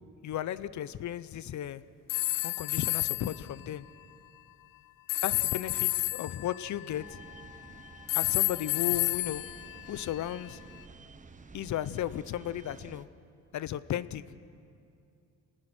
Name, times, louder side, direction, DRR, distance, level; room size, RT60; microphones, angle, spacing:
voice 1, 0.2-1.8 2.4-3.9 5.2-7.2 8.1-9.4 9.9-10.6 11.5-13.1 13.5-14.2, left 11 dB, 60° left, 16 dB, 0.8 m, -35 dB
sound 1, 2.1-3.4 5.1-7.6 8.1-10.4, left 20 dB, 90° left, 0.5 m, -31 dB
sound 2, 6.9-13.0, right 4 dB, 25° right, 1.1 m, -51 dB
29.0 x 19.0 x 6.1 m, 2.5 s
cardioid pair, 110°, 32 cm